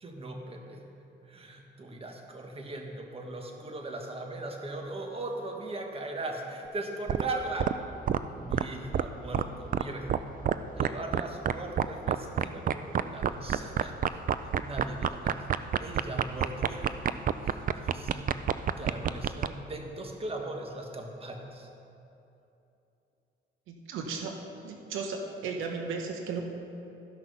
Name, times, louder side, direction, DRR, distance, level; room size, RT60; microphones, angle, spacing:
voice 1, 0.0-0.8 1.3-7.8 8.4-15.5 15.8-16.9 17.5-18.3 18.8-21.7, right 2 dB, 30° right, 2 dB, 1.4 m, -39 dB
sound 1, 7.1-7.2 7.6-7.7 8.1-8.2 8.5-8.6 8.9-9.1 9.3-9.4 9.7-9.8 10.1-10.2 10.4-10.9 11.1-11.2 11.5-19.5, right 9 dB, 45° right, 0.4 m, -26 dB
voice 2, 23.7-24.3 24.6-26.4, right 5 dB, 90° right, 2 dB, 1.0 m, -35 dB
13.5 x 6.2 x 5.5 m, 2.9 s
cardioid pair, 90°, 20 cm